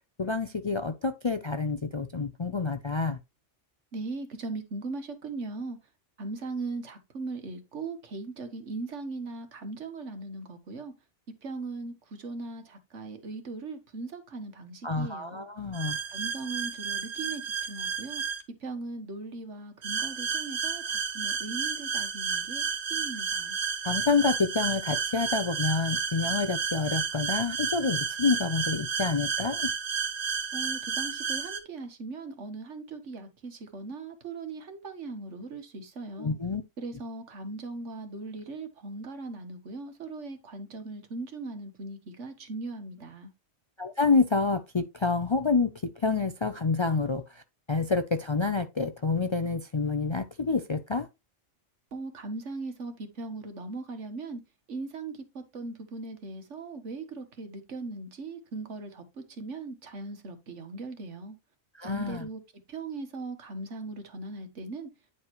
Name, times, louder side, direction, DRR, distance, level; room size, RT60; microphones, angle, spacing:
voice 1, 0.2-3.2 14.8-16.0 23.8-29.7 36.2-36.6 43.8-45.7 46.0-47.4 47.7-51.1 61.7-62.3, left 4 dB, 45° left, 0.4 m, -28 dB
voice 2, 3.9-5.8 6.2-10.9 11.4-15.5 16.1-18.2 18.6-22.6 22.9-23.6 30.5-36.4 36.8-43.3 51.9-54.4 54.7-61.4 61.8-62.4 62.7-64.9, right 3 dB, 90° right, 1.7 m, -39 dB
sound 1, 15.7-18.4 19.8-31.6, right 6 dB, 70° right, 1.6 m, -32 dB
10.0 x 4.8 x 3.0 m
omnidirectional pair, 1.2 m